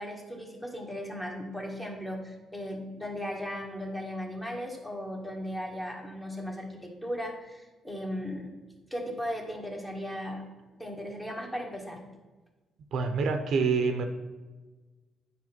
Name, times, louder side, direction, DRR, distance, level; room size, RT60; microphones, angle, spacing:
voice 1, 0.0-8.5 8.9-10.4 10.8-12.0, equal, 10° left, 0 dB, 1.7 m, -37 dB
voice 2, 12.9-14.0, right 5 dB, 70° right, 6 dB, 0.8 m, -26 dB
9.1 x 3.4 x 6.0 m, 1.2 s
cardioid pair, 90°, 0 cm